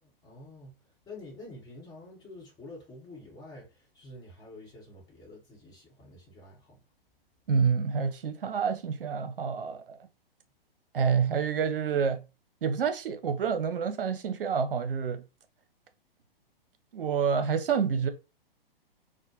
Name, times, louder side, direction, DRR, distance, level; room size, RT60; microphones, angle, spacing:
voice 1, 0.0-0.8 1.1-6.8, left 2 dB, 15° left, 1.2 m, -48 dB
voice 2, 7.5-10.0 10.9-12.2 12.6-15.2 16.9-18.1, right 6 dB, 65° right, 0.7 m, -28 dB
4.2 x 2.2 x 2.9 m
figure-of-eight pair, 120°, 30 cm